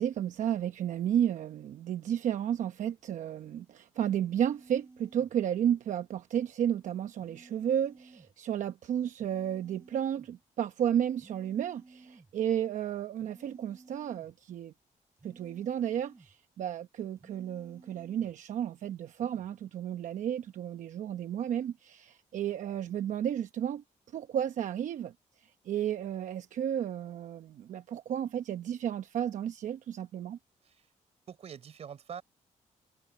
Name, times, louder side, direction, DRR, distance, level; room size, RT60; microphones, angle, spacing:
voice 1, 0.0-14.7 15.2-23.8 24.1-25.1 25.7-30.4, right 10 dB, 70° right, 0.9 m, -32 dB
sound 1, 4.2-5.3 7.2-8.3 9.2-10.3 11.2-12.3 13.2-14.4 15.2-16.4 17.2-18.4 19.2-19.5, right 3 dB, 20° right, 7.9 m, -56 dB
voice 2, 31.3-32.2, right 8 dB, 50° right, 4.0 m, -44 dB
cardioid pair, 155°, 13 cm